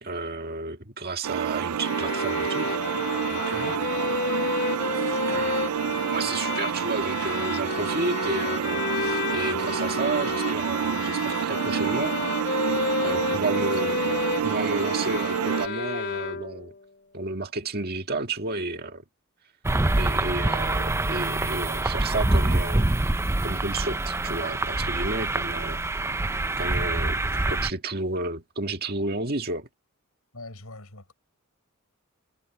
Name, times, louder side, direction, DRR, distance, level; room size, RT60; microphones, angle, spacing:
voice 1, 0.0-2.8 3.3-3.9 5.3-5.6 6.1-12.1 13.0-14.0 14.4-16.7 17.1-19.0 20.0-22.9 23.4-26.2 26.6-27.2 27.5-29.7, right 3 dB, 45° right, 1.8 m, -32 dB
sound 1, 1.2-15.7, right 8 dB, 90° right, 0.4 m, -28 dB
sound 2, 1.8-16.8, left 4 dB, 50° left, 2.5 m, -31 dB
voice 2, 3.5-3.8 4.9-5.5 13.2-13.8 30.3-31.1, left 2 dB, 75° left, 6.4 m, -43 dB
sound 3, 19.6-27.7, right 2 dB, 10° right, 0.4 m, -25 dB
head